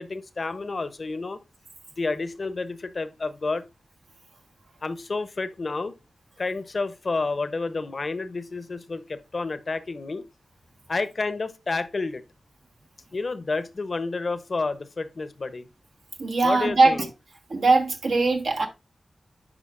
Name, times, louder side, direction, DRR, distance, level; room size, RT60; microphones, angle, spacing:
voice 1, 0.0-1.4 2.0-3.6 4.8-5.9 6.4-10.2 10.9-12.2 13.1-15.7 16.4-17.1, left 3 dB, 55° left, 0.8 m, -30 dB
voice 2, 16.2-17.1 17.5-18.7, right 3 dB, 80° right, 1.3 m, -21 dB
9.9 x 4.8 x 2.5 m
cardioid pair, 45°, 0 cm